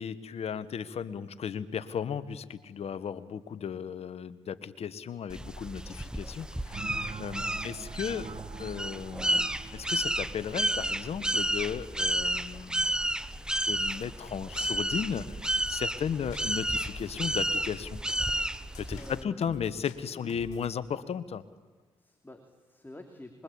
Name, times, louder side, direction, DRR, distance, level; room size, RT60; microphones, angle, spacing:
voice 1, 0.0-8.3 8.6-13.0 13.6-18.0 18.8-21.4, left 7 dB, 65° left, 13 dB, 1.4 m, -35 dB
sound 1, 5.3-19.2, right 1 dB, 5° right, 1.0 m, -32 dB
sound 2, 6.7-12.1, right 6 dB, 55° right, 1.6 m, -46 dB
sound 3, 13.7-14.1 14.6-15.0 15.4-15.9 16.3-17.6 18.1-20.7, left 8 dB, 85° left, 2.3 m, -51 dB
voice 2, 18.9-19.7 20.1-20.4 22.0-23.4, left 1 dB, 15° left, 4 dB, 3.1 m, -49 dB
25.0 x 22.5 x 8.6 m, 1.4 s
supercardioid pair, 55°, 11 cm